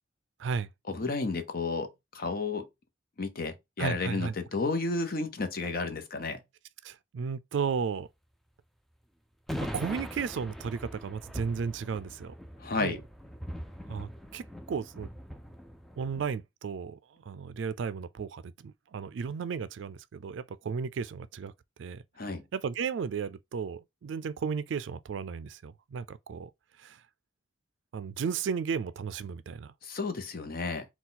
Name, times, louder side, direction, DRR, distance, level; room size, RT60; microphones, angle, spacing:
voice 1, 0.9-2.7 3.2-6.4 12.6-13.0 22.2-22.4 29.8-30.9, left 3 dB, 50° left, 0.8 m, -32 dB
voice 2, 3.8-4.3 6.8-8.1 9.7-12.3 12.8-13.0 13.9-15.1 16.0-17.0 17.3-21.5 21.8-22.0 22.5-26.5 26.8-27.0 27.9-29.7, right 6 dB, 70° right, 0.3 m, -34 dB
sound 1, 9.5-16.3, equal, ahead, 0.4 m, -41 dB
4.1 x 2.3 x 3.8 m
head